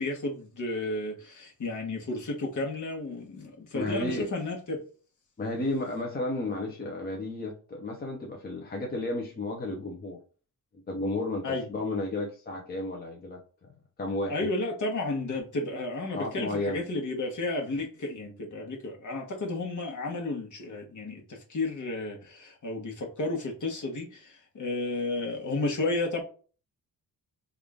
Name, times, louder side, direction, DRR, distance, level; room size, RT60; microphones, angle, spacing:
voice 1, 0.0-4.8 11.4-11.7 14.3-26.2, left 2 dB, 50° left, 1.3 m, -32 dB
voice 2, 3.7-4.3 5.4-10.2 10.9-13.7 14.0-14.4 16.1-16.8, left 2 dB, 25° left, 0.8 m, -33 dB
3.6 x 2.5 x 3.5 m
cardioid pair, 115°, 38 cm